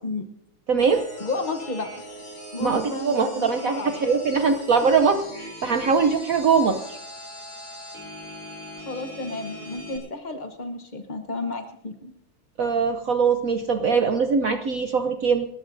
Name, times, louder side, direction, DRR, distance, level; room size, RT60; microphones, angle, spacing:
voice 1, 0.7-1.0 2.6-7.0 12.6-15.5, right 5 dB, 70° right, 7 dB, 0.8 m, -22 dB
sound 1, 0.8-10.0, equal, 90° left, 8.1 m, -40 dB
voice 2, 1.2-1.9 2.5-4.0 4.8-4.9 8.8-12.1, left 2 dB, 70° left, 5 dB, 0.4 m, -32 dB
29.5 x 14.0 x 2.6 m, 0.79 s
omnidirectional pair, 2.4 m